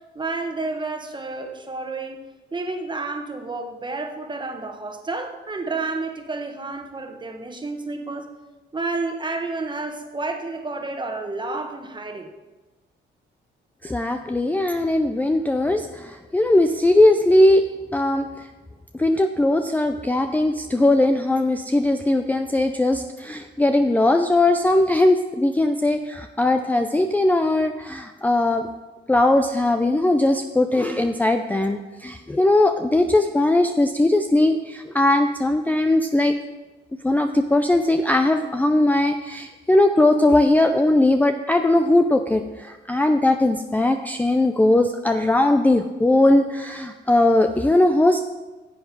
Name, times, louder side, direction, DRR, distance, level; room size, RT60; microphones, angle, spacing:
voice 1, 0.1-2.2 2.5-8.3 8.7-12.3, right 3 dB, 25° right, 5 dB, 1.3 m, -30 dB
voice 2, 13.8-17.7 17.9-18.5 18.9-28.7 29.1-36.4 37.0-48.2, left 1 dB, 10° left, 6 dB, 0.5 m, -19 dB
10.5 x 7.6 x 4.8 m, 1.2 s
cardioid pair, 90°, 20 cm